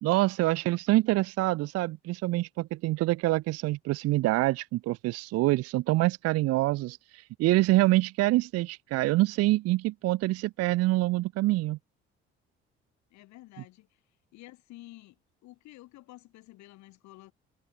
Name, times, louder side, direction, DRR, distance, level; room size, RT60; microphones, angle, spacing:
voice 1, 0.0-11.8, right 18 dB, 50° right, 0.6 m, -26 dB
voice 2, 13.1-14.0 14.3-17.3, left 18 dB, 60° left, 3.5 m, -51 dB
figure-of-eight pair, 45°, 32 cm